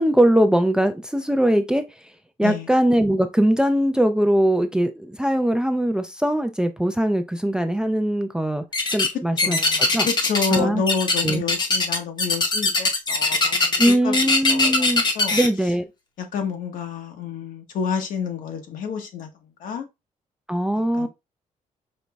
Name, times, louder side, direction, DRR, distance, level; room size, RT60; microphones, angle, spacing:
voice 1, 0.0-1.8 2.4-8.6 8.9-9.6 9.9-10.1 10.5-10.8 11.2-11.4 13.8-15.0 15.3-15.9 20.5-21.1, right 1 dB, 5° right, 0.3 m, -21 dB
sound 1, 8.7-9.1 9.4-10.6 10.9-15.5, left 3 dB, 30° left, 0.7 m, -21 dB
voice 2, 9.4-15.4 16.2-19.3 19.6-19.9 20.7-21.1, left 6 dB, 75° left, 1.0 m, -29 dB
5.1 x 3.0 x 2.2 m
cardioid pair, 130°, 14 cm